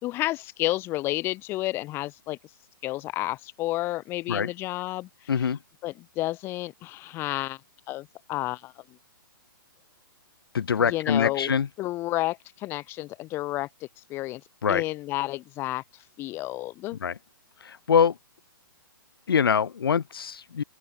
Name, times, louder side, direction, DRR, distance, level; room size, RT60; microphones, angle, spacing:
voice 1, 0.0-2.4 2.8-5.5 5.8-7.6 7.9-8.7 10.9-14.4 14.7-15.8 16.2-17.0, left 17 dB, 20° left, 3.3 m, -31 dB
voice 2, 10.5-11.7 14.6-14.8 17.0-17.1 17.7-18.1 19.3-20.6, left 7 dB, 85° left, 1.7 m, -24 dB
open air
hypercardioid pair, 165°, 12 cm